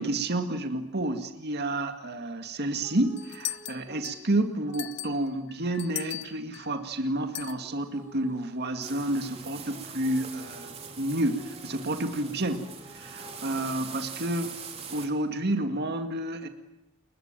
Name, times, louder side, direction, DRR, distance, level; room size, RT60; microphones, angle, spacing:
voice 1, 0.0-10.7 11.0-12.7 12.9-14.6 14.9-16.5, right 1 dB, 50° right, 6 dB, 2.1 m, -30 dB
sound 1, 2.8-5.5 7.0-13.8, right 1 dB, 15° right, 4.1 m, -51 dB
sound 2, 3.2-4.3 4.7-6.7 7.3-7.6, left 15 dB, 55° left, 1.0 m, -37 dB
sound 3, 8.8-15.1, right 6 dB, 30° right, 3.6 m, -43 dB
30.0 x 22.0 x 9.1 m, 0.91 s
head